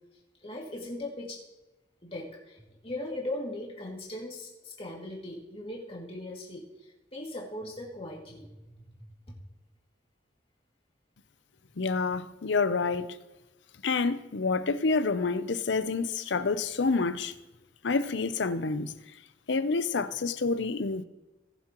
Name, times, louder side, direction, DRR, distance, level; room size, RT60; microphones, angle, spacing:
voice 1, 0.4-1.4 2.0-8.7, left 1 dB, 30° left, 2.3 m, -39 dB
voice 2, 11.8-13.2 13.8-17.3 17.8-18.9 19.5-21.0, left 4 dB, 70° left, 0.6 m, -28 dB
19.5 x 7.5 x 3.0 m
head